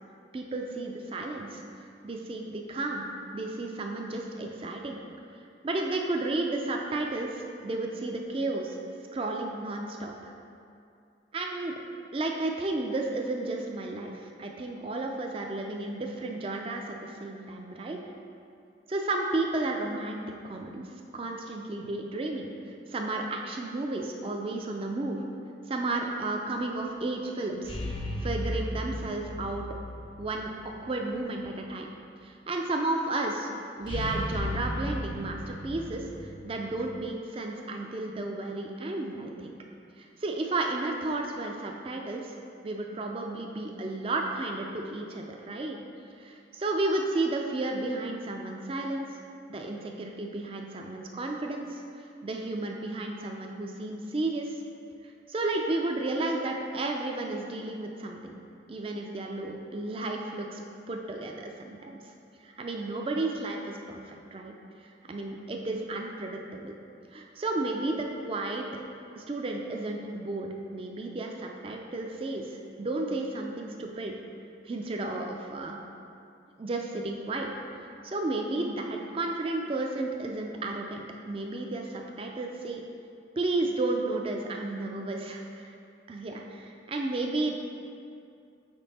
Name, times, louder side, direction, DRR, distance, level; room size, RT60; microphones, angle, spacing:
voice 1, 0.3-1.6 2.0-5.0 5.6-8.8 9.1-10.3 11.3-11.7 12.1-18.0 18.9-20.9 21.1-22.5 22.9-25.2 25.7-27.8 28.2-29.7 30.2-31.9 32.2-33.5 33.8-39.5 40.0-42.4 42.6-45.8 46.2-49.1 49.5-54.6 55.3-58.4 58.7-60.6 60.9-62.0 62.4-64.5 64.8-66.7 67.1-68.6 69.2-74.1 74.6-75.8 76.6-82.8 83.4-85.7 86.1-87.5, right 2 dB, 30° right, 1 dB, 0.4 m, -33 dB
sound 1, 27.7-31.0 31.2-31.3 33.8-36.8, left 1 dB, 25° left, 0.5 m, -35 dB
5.2 x 4.6 x 4.1 m, 2.5 s
head